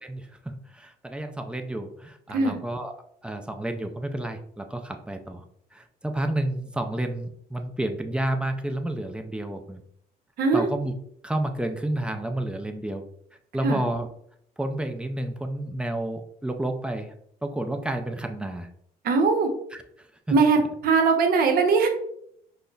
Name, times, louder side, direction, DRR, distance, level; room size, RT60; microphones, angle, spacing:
voice 1, 0.0-2.9 3.2-5.4 5.7-9.8 10.5-10.9 11.2-13.0 13.5-14.1 14.6-17.1 17.4-18.7 19.7-20.4, right 1 dB, 5° right, 5 dB, 0.3 m, -30 dB
voice 2, 19.0-19.5 20.3-21.9, right 4 dB, 60° right, 4 dB, 0.7 m, -20 dB
5.2 x 2.1 x 2.3 m, 0.69 s
cardioid pair, 110°, 17 cm